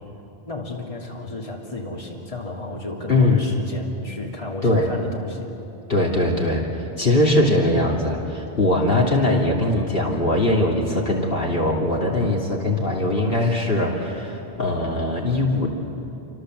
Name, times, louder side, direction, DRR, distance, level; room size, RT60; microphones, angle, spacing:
voice 1, 0.5-5.5, left 2 dB, 30° left, -1 dB, 3.0 m, -33 dB
voice 2, 3.1-3.5 4.6-4.9 5.9-6.6 7.0-15.7, left 1 dB, 60° left, -1 dB, 3.1 m, -21 dB
28.5 x 25.5 x 7.8 m, 2.9 s
omnidirectional pair, 1.1 m